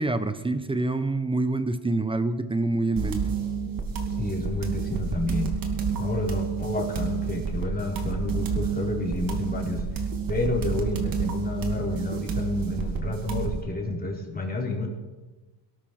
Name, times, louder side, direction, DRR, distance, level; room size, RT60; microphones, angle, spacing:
voice 1, 0.0-3.2, right 2 dB, 10° right, 11 dB, 0.9 m, -26 dB
sound 1, 3.0-13.6, right 5 dB, 45° right, 2.5 m, -29 dB
voice 2, 4.2-5.5 6.0-9.8 10.3-14.9, left 2 dB, 20° left, 0 dB, 3.4 m, -30 dB
18.0 x 12.5 x 4.4 m, 1.2 s
cardioid pair, 110°, 46 cm